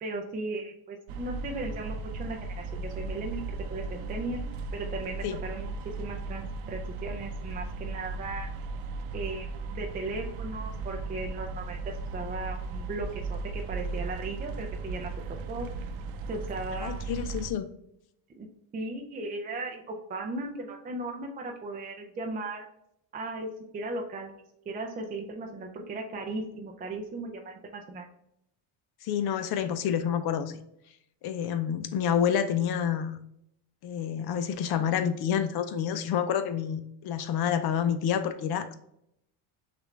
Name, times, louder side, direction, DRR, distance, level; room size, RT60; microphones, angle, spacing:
voice 1, 0.0-4.4 4.7-8.5 9.1-9.5 9.7-15.1 15.5-15.7 16.3-17.1 18.3-18.5 18.7-22.7 23.1-24.3 24.7-28.0, right 2 dB, 20° right, 2 dB, 0.4 m, -37 dB
sound 1, 1.1-17.5, right 3 dB, 80° right, 0.6 m, -36 dB
voice 2, 16.8-17.7 29.0-30.6 31.2-33.2 33.8-38.7, left 8 dB, 55° left, 10 dB, 0.6 m, -28 dB
6.4 x 2.5 x 3.1 m, 0.76 s
cardioid pair, 150°, 47 cm